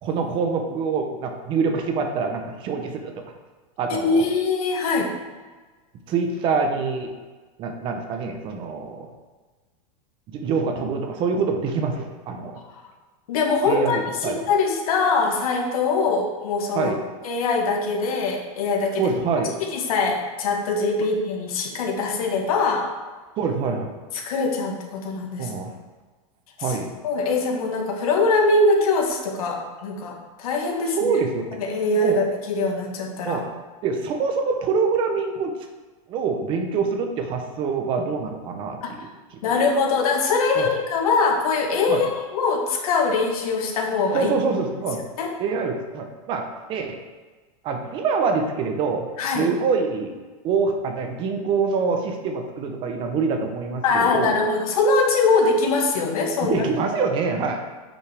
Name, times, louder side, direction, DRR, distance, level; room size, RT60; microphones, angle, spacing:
voice 1, 0.0-3.1 3.8-4.2 6.1-7.1 7.6-9.1 10.3-12.6 13.7-14.5 16.7-17.0 19.0-19.6 23.4-23.9 25.4-25.8 26.6-26.9 30.9-31.5 32.0-32.2 33.2-33.5 33.8-35.5 36.1-39.1 39.3-39.4 40.6-40.7 41.9-42.0 44.1-45.0 45.4-47.0 47.6-49.1 49.3-50.2 50.4-54.4 56.4-57.6, right 5 dB, 25° right, 4 dB, 0.7 m, -25 dB
voice 2, 4.0-5.1 13.3-16.9 17.2-19.0 19.7-22.9 24.1-25.5 27.0-31.2 31.6-33.4 38.8-38.9 39.4-44.3 45.2-45.3 49.2-49.5 53.8-56.6, left 3 dB, 75° left, 1 dB, 1.7 m, -22 dB
8.5 x 5.7 x 3.4 m, 1.3 s
supercardioid pair, 165°, 18 cm